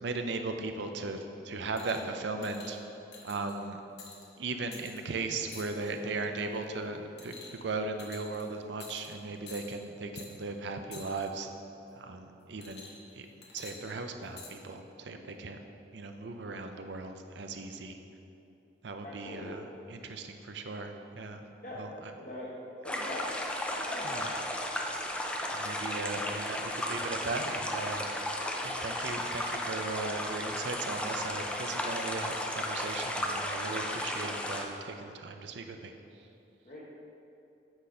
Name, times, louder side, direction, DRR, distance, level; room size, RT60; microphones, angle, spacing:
voice 1, 0.0-2.8 3.2-3.8 4.4-7.3 7.6-11.5 12.0-13.3 13.5-15.6 15.9-18.0 18.8-19.6 19.9-21.4 21.8-22.1 24.0-24.3 25.5-28.1 28.6-35.9, right 3 dB, 70° right, 6 dB, 0.5 m, -37 dB
sound 1, 1.8-2.1 2.4-2.7 3.1-3.5 4.0-4.2 4.7-5.0 5.5-6.0 6.4-6.6 7.2-7.7 8.0-8.4 8.8-9.1 9.5-9.8 10.2-10.3 10.9-11.3 12.6-13.1 13.4-14.5 15.3-15.4, left 4 dB, 65° left, 1.1 m, -48 dB
voice 2, 19.0-19.6 21.6-21.8 22.1-22.5 22.8-23.3 23.8-24.3 36.6-36.8, left 1 dB, 40° left, -6 dB, 0.9 m, -42 dB
sound 2, 22.9-34.6, left 1 dB, 5° left, 0.4 m, -34 dB
8.1 x 4.1 x 4.9 m, 2.8 s
head